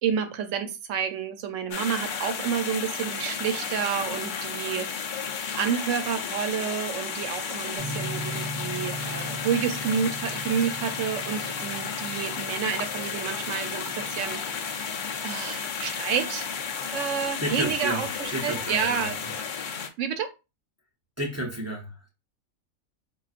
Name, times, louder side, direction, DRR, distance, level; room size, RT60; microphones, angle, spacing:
voice 1, 0.0-14.9 15.2-16.5 16.9-19.2 20.0-20.3, right 7 dB, 70° right, 8 dB, 0.9 m, -30 dB
sound 1, 1.7-19.9, left 6 dB, 75° left, 0.4 m, -33 dB
sound 2, 7.8-16.5, right 2 dB, 55° left, 0.9 m, -40 dB
voice 2, 17.4-18.0 18.3-19.0 21.2-22.1, right 1 dB, 25° right, -1 dB, 0.3 m, -31 dB
4.7 x 2.4 x 2.4 m, 0.27 s
omnidirectional pair, 1.5 m